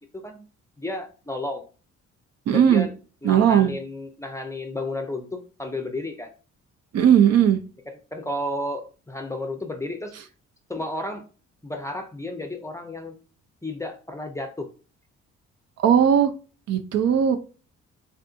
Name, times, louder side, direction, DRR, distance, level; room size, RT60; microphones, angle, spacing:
voice 1, 0.1-0.4 0.8-1.7 2.5-2.9 3.2-6.3 7.9-10.1 10.7-11.3 11.6-13.2 13.6-14.7, left 1 dB, 10° left, 5 dB, 0.5 m, -32 dB
voice 2, 2.5-2.9 3.2-3.7 6.9-7.6 15.8-16.3 16.7-17.4, right 9 dB, 60° right, 8 dB, 0.5 m, -17 dB
3.7 x 2.5 x 2.4 m, 0.37 s
cardioid pair, 90°, 30 cm